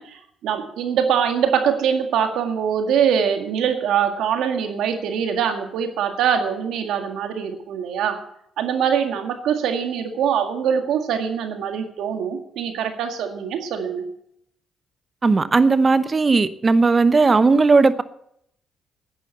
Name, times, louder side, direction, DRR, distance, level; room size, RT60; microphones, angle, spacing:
voice 1, 0.0-8.2 8.6-14.1, right 8 dB, 85° right, 2.0 m, -23 dB
voice 2, 15.2-18.0, right 4 dB, 30° right, 0.9 m, -16 dB
11.0 x 10.0 x 7.8 m
cardioid pair, 90°, 0 cm